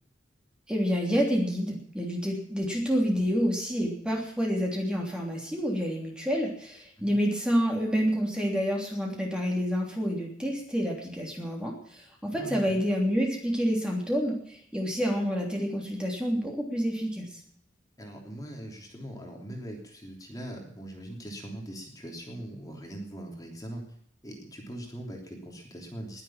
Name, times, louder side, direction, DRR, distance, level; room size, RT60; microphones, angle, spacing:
voice 1, 0.7-17.3, equal, 5° right, -1 dB, 3.2 m, -28 dB
voice 2, 12.3-12.8 18.0-23.8 24.2-26.2, right 1 dB, 20° left, 1 dB, 3.2 m, -41 dB
20.5 x 7.9 x 7.4 m, 0.65 s
head